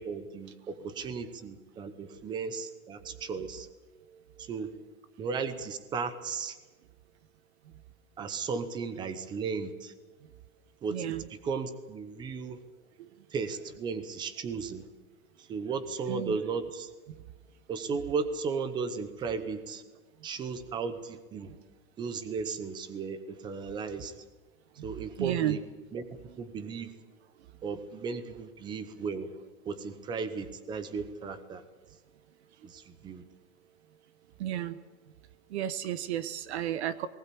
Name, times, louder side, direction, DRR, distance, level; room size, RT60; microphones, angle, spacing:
voice 1, 0.0-3.7 4.4-4.7 5.2-6.6 8.2-9.9 10.8-12.6 13.3-14.8 15.5-16.9 17.7-19.8 20.2-21.5 22.0-24.1 24.8-25.6 25.9-26.1 26.4-26.9 27.6-29.3 29.6-31.6 32.6-33.2, right 5 dB, 10° right, 12 dB, 0.8 m, -35 dB
voice 2, 4.1-4.5 10.9-11.2 13.0-13.1 16.1-16.4 21.5-21.6 24.8-25.6 34.4-34.8 35.5-37.1, right 12 dB, 45° right, 15 dB, 1.0 m, -33 dB
19.5 x 19.5 x 8.4 m, 1.3 s
supercardioid pair, 170°, 44 cm